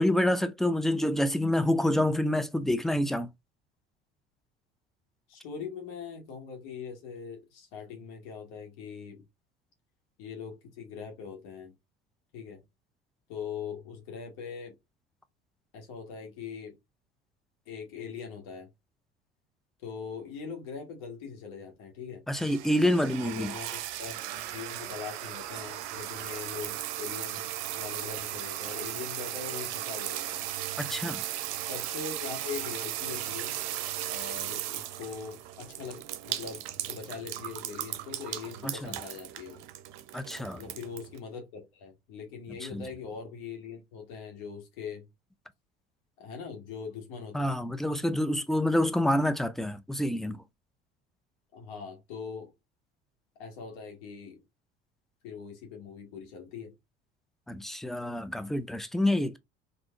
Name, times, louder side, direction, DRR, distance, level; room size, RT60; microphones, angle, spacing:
voice 1, 0.0-3.3 22.3-23.5 30.8-31.2 38.6-38.9 40.1-40.6 42.6-42.9 47.3-50.4 57.5-59.4, left 1 dB, ahead, 0.3 m, -27 dB
voice 2, 5.3-9.2 10.2-11.7 12.3-12.6 13.3-14.7 15.7-16.8 17.7-18.7 19.8-22.2 23.2-30.4 31.7-33.6 34.1-39.6 40.5-45.1 46.2-47.6 51.5-52.5 53.4-54.4 55.2-56.7, left 6 dB, 70° left, 1.3 m, -41 dB
sound 1, 22.3-41.2, right 13 dB, 65° right, 0.6 m, -37 dB
3.5 x 2.5 x 2.3 m
hypercardioid pair, 65°, 30 cm